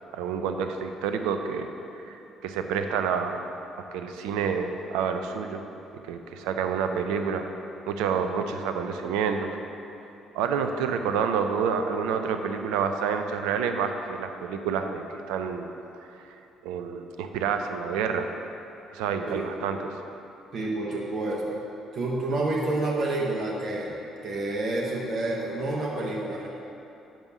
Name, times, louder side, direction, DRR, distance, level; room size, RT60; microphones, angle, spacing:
voice 1, 0.1-1.7 2.0-3.4 3.9-5.6 6.0-7.5 7.9-9.5 10.3-15.7 15.9-16.0 16.6-18.3 18.9-19.9, right 6 dB, 70° right, 6 dB, 0.5 m, -28 dB
voice 2, 20.5-21.6 21.9-26.5, right 2 dB, 50° right, -3 dB, 1.1 m, -29 dB
7.6 x 5.3 x 6.2 m, 2.8 s
hypercardioid pair, 50°, 0 cm